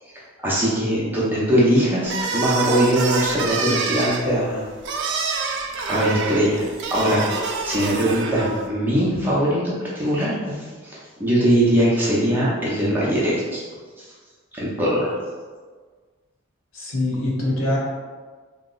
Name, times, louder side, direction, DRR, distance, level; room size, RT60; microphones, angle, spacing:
voice 1, 0.0-4.6 5.9-13.6 14.0-14.2 14.5-15.1, equal, 10° right, -7 dB, 0.5 m, -21 dB
sound 1, 2.0-8.7, right 4 dB, 55° right, 0.3 m, -27 dB
voice 2, 16.7-17.8, left 1 dB, 70° left, -4 dB, 0.8 m, -23 dB
2.8 x 2.0 x 3.8 m, 1.5 s
head